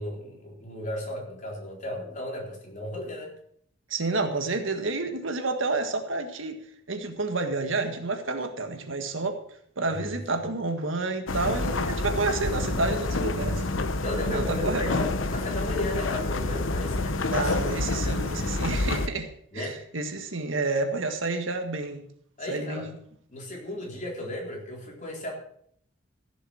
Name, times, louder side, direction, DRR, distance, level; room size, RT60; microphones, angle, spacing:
voice 1, 0.0-3.3 9.9-10.4 13.3-13.6 14.0-17.5 18.0-18.2 19.5-19.8 22.4-22.9 23.3-25.4, left 1 dB, 40° left, -1 dB, 3.8 m, -35 dB
voice 2, 3.9-6.6 6.9-9.4 9.8-13.6 14.3-14.9 17.3-22.0 22.5-22.9, right 3 dB, 70° right, 6 dB, 1.7 m, -29 dB
sound 1, 11.3-19.1, left 2 dB, 75° left, 1.0 m, -28 dB
15.5 x 7.2 x 6.4 m, 0.65 s
head